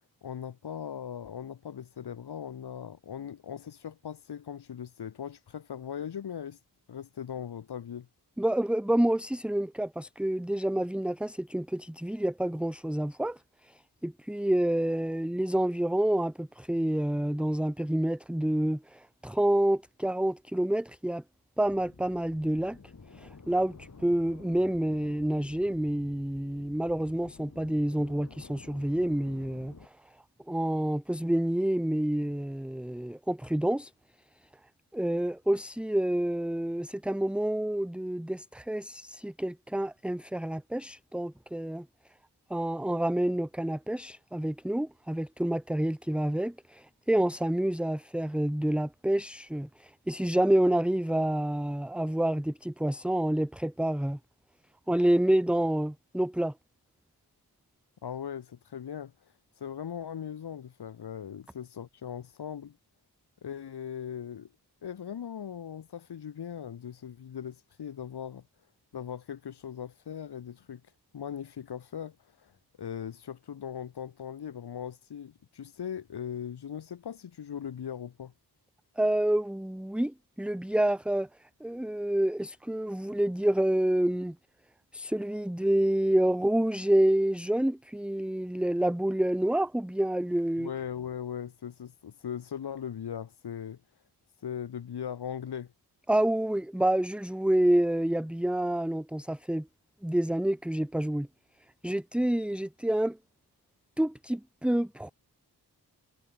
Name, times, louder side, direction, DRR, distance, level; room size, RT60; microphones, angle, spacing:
voice 1, 0.2-6.6 6.9-8.1 58.0-59.1 59.6-62.8 63.4-64.5 64.8-68.4 68.9-70.8 71.1-78.3 90.6-93.8 94.4-95.7, left 8 dB, 80° left, 1.2 m, -39 dB
voice 2, 8.4-21.2 21.6-22.8 23.1-30.1 30.5-33.9 34.9-41.9 42.5-54.2 54.9-56.5 79.0-81.3 81.6-84.4 84.9-90.7 96.1-99.7 100.0-101.3 101.8-103.2 104.0-105.1, right 1 dB, 5° right, 0.9 m, -28 dB
sound 1, 21.6-29.9, left 4 dB, 45° left, 3.0 m, -51 dB
cardioid pair, 50°, 40 cm